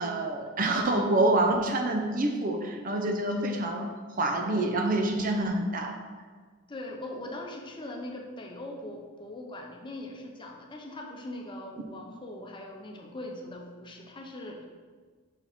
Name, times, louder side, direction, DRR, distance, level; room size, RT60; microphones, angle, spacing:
voice 1, 0.0-6.0, right 2 dB, 40° right, 3 dB, 0.6 m, -27 dB
voice 2, 6.7-14.7, left 1 dB, 25° left, 1 dB, 0.8 m, -41 dB
5.5 x 4.7 x 4.3 m, 1.5 s
head